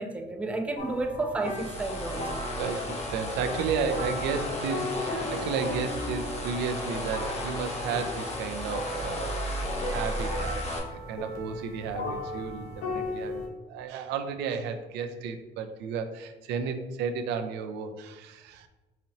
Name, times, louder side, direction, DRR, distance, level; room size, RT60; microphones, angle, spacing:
voice 1, 0.0-2.3, right 2 dB, 10° right, 4 dB, 0.3 m, -31 dB
sound 1, 0.8-13.5, left 2 dB, 70° left, 0.8 m, -37 dB
sound 2, 1.4-10.8, left 1 dB, 40° left, 0.8 m, -34 dB
voice 2, 2.6-18.7, right 6 dB, 85° right, 7 dB, 0.4 m, -33 dB
4.0 x 2.7 x 2.8 m, 1.1 s
cardioid pair, 110°, 17 cm